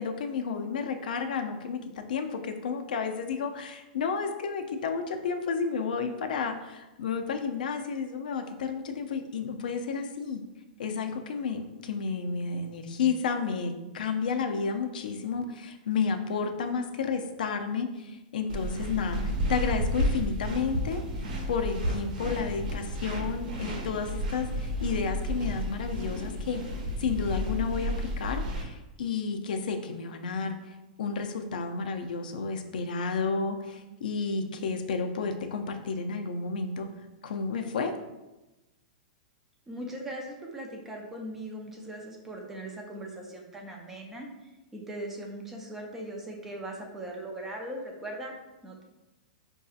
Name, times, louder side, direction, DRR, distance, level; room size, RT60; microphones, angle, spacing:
voice 1, 0.0-10.4 10.8-21.0 21.5-26.6 27.0-36.9 37.2-37.9, left 5 dB, 80° left, 6 dB, 0.5 m, -31 dB
sound 1, 18.5-28.6, equal, 70° right, 0.8 m, -32 dB
voice 2, 39.7-44.3 44.7-48.3 48.6-48.8, right 1 dB, 5° right, 0 dB, 0.3 m, -39 dB
5.3 x 2.7 x 2.4 m, 1.0 s
supercardioid pair, 175°, 5 cm